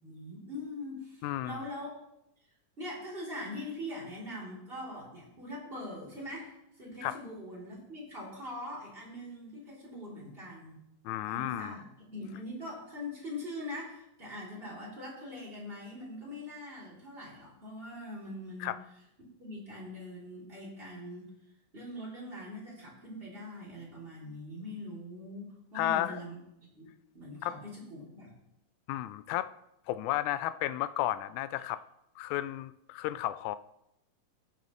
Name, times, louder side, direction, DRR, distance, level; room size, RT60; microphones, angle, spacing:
voice 1, 0.0-2.0 2.8-10.8 11.2-18.7 19.2-21.3 21.7-26.4 26.7-28.3, left 1 dB, 20° right, -5 dB, 3.4 m, -42 dB
voice 2, 1.2-1.6 7.0-7.2 11.1-11.8 18.6-18.8 25.8-26.2 27.4-27.6 28.9-29.5 29.9-31.8 32.2-33.6, left 14 dB, 85° left, 14 dB, 1.9 m, -33 dB
17.5 x 6.8 x 3.2 m, 0.82 s
omnidirectional pair, 3.4 m